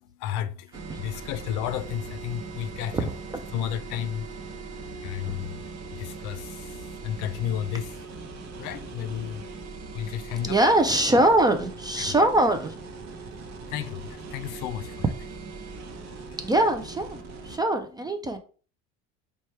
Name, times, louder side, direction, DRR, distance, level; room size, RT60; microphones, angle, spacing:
voice 1, 0.0-3.1 3.5-4.7 5.0-8.0 8.6-9.5 9.9-10.6 12.0-12.2 13.1-13.2 13.7-15.0 16.3-16.4, left 10 dB, 65° left, 0.5 m, -33 dB
sound 1, 0.7-17.6, right 4 dB, 55° right, 0.8 m, -40 dB
voice 2, 2.9-3.4 5.2-5.5 10.4-12.7 16.4-18.4, right 1 dB, 15° right, 0.3 m, -23 dB
3.1 x 2.3 x 4.3 m
supercardioid pair, 105°, 33 cm